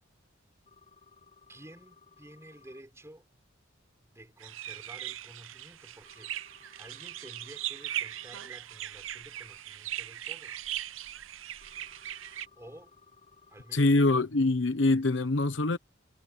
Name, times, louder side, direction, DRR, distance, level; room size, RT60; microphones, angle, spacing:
sound 1, 0.7-2.8 6.0-8.4 11.6-13.9, left 5 dB, 35° left, 7.3 m, -60 dB
voice 1, 1.5-3.3 4.0-10.7 12.6-12.9 13.5-14.2, right 1 dB, 15° right, 3.9 m, -52 dB
sound 2, 4.4-12.5, right 12 dB, 80° right, 0.6 m, -39 dB
voice 2, 13.7-15.8, left 2 dB, 65° left, 1.0 m, -24 dB
head